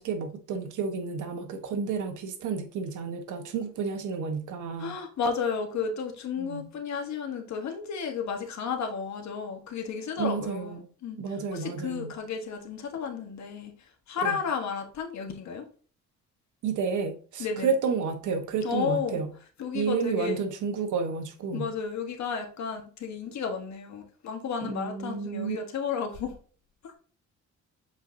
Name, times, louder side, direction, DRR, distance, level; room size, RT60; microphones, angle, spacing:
voice 1, 0.0-5.0 6.4-6.7 10.2-10.9 11.2-12.1 14.2-14.4 16.6-19.3 19.7-21.7 24.6-25.6, right 5 dB, 80° right, 1.3 m, -31 dB
voice 2, 4.8-11.2 11.5-15.7 17.4-17.7 18.6-19.2 19.6-20.4 21.5-26.4 26.8-27.0, left 6 dB, 65° left, 1.5 m, -33 dB
7.9 x 4.6 x 2.7 m
cardioid pair, 90°, 30 cm